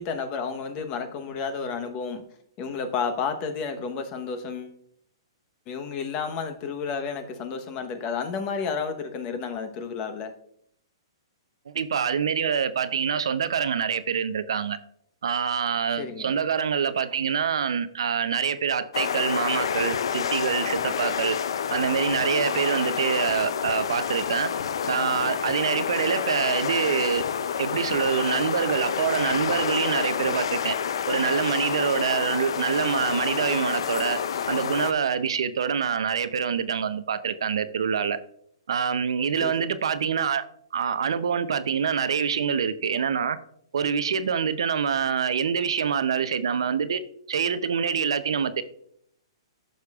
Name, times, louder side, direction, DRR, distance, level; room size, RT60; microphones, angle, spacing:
voice 1, 0.0-2.2 2.6-4.8 5.7-10.3 16.0-16.4 39.4-39.5, left 5 dB, 30° left, 1.0 m, -31 dB
voice 2, 11.7-14.8 15.2-21.4 21.7-24.5 24.9-27.2 27.6-30.8 31.1-34.2 34.5-38.2 38.7-40.4 40.7-43.4 43.7-47.0 47.3-48.6, right 7 dB, 75° right, 0.6 m, -25 dB
sound 1, 18.9-34.9, left 8 dB, 70° left, 0.5 m, -28 dB
11.5 x 6.5 x 2.4 m
hypercardioid pair, 140°, 3 cm